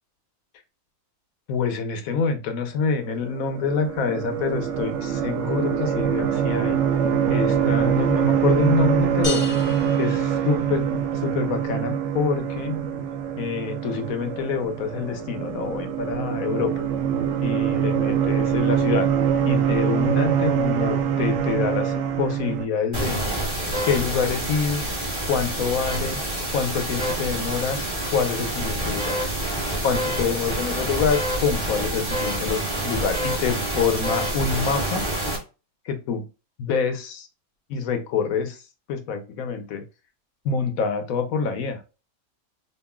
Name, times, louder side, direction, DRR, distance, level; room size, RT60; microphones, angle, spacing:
voice 1, 1.5-6.8 7.3-9.4 10.0-12.8 13.4-16.8 17.4-19.1 19.4-23.2 23.8-24.8 25.3-26.2 26.5-29.2 29.8-35.1 35.8-36.3 36.6-37.3 37.7-38.6 38.9-39.8 40.4-41.8, left 5 dB, 75° left, 7 dB, 1.2 m, -26 dB
sound 1, 3.2-22.7, right 8 dB, 65° right, 0.8 m, -24 dB
sound 2, 9.2-11.1, left 4 dB, 40° left, 0.9 m, -34 dB
sound 3, 22.9-35.4, right 1 dB, 35° right, 2.1 m, -27 dB
5.3 x 2.5 x 2.2 m, 0.30 s
omnidirectional pair, 1.5 m